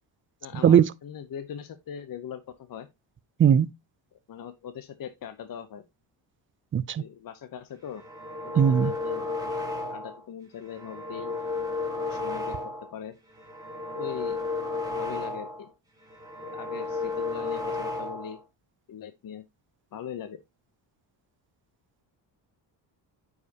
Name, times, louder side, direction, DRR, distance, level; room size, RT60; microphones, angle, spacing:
voice 1, 0.4-2.9 4.1-5.8 7.0-8.0 8.4-9.3 9.9-11.4 12.0-12.6 12.9-13.2 14.0-14.4 14.9-15.7 16.4-18.4 18.9-19.4 19.9-20.4, left 8 dB, 45° left, 0.8 m, -40 dB
voice 2, 6.7-7.0 8.6-8.9, right 8 dB, 30° right, 0.4 m, -19 dB
sound 1, 7.9-10.2 10.6-13.0 13.3-15.7 16.0-18.4, left 3 dB, 10° right, 2.3 m, -33 dB
9.3 x 4.9 x 2.8 m
cardioid pair, 95°, 46 cm